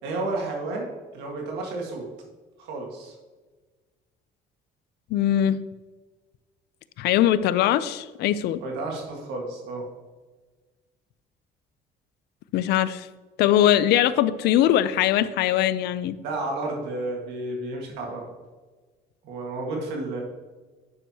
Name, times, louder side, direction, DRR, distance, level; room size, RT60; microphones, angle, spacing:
voice 1, 0.0-2.0 2.6-3.1 8.6-9.9 16.2-18.3 19.2-20.2, right 2 dB, 90° right, 0 dB, 1.8 m, -31 dB
voice 2, 5.1-5.6 7.0-8.6 12.5-13.1 13.4-16.1, left 12 dB, 80° left, 15 dB, 0.5 m, -21 dB
9.7 x 6.4 x 2.8 m, 1.3 s
cardioid pair, 110°, 17 cm